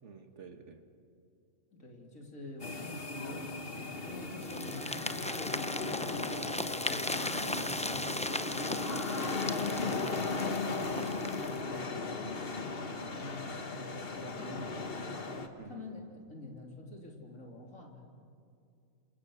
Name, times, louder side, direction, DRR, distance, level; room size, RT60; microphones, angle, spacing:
voice 1, 0.0-0.8 14.4-14.6 15.6-15.9, right 5 dB, 60° right, 5 dB, 2.1 m, -50 dB
voice 2, 1.7-3.5 4.0-8.7 9.1-12.2 12.7-14.7 15.0-15.2 15.7-16.0 16.3-18.0, left 1 dB, 70° left, 1 dB, 3.8 m, -46 dB
sound 1, 2.6-15.5, left 3 dB, 45° left, 1.6 m, -37 dB
sound 2, 4.4-11.6, left 1 dB, 10° left, 0.4 m, -38 dB
28.0 x 27.5 x 6.5 m, 2.5 s
omnidirectional pair, 1.4 m